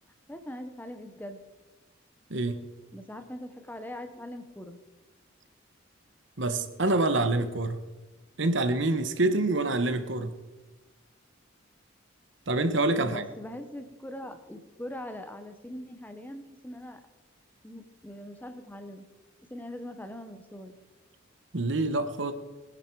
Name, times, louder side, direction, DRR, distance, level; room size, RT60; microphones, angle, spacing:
voice 1, 0.3-1.4 2.9-4.8 13.0-17.0 17.6-19.1 19.4-20.8, left 1 dB, 10° left, 8 dB, 0.8 m, -41 dB
voice 2, 2.3-2.6 6.4-7.8 8.4-10.3 12.5-13.2 21.5-22.3, right 2 dB, 60° right, 10 dB, 1.1 m, -26 dB
20.0 x 10.5 x 4.6 m, 1.2 s
head